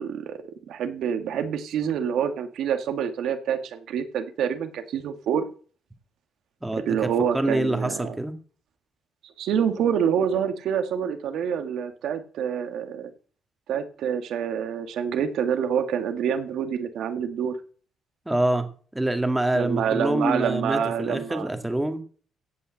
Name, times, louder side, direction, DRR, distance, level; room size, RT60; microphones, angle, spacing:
voice 1, 0.0-5.5 6.7-8.2 9.2-13.1 13.7-17.6 19.5-21.5, right 8 dB, 75° right, 8 dB, 1.8 m, -27 dB
voice 2, 6.6-7.1 7.3-8.4 18.3-18.7 18.9-22.0, right 1 dB, 10° right, 7 dB, 2.0 m, -25 dB
16.5 x 5.6 x 7.6 m, 0.43 s
cardioid pair, 90°, 0 cm